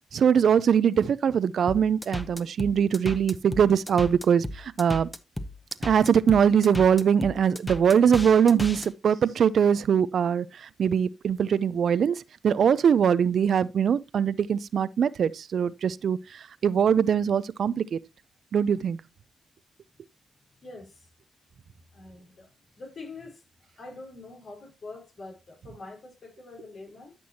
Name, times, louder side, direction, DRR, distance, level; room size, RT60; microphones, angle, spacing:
voice 1, 0.1-5.1 5.8-18.0 18.5-19.0, right 7 dB, 70° right, 0.5 m, -22 dB
sound 1, 1.7-8.9, left 1 dB, 20° left, 1.3 m, -35 dB
voice 2, 20.6-21.1 21.9-23.4 23.7-27.2, left 3 dB, 65° left, 4.5 m, -44 dB
13.0 x 6.2 x 2.8 m
supercardioid pair, 50°, 0 cm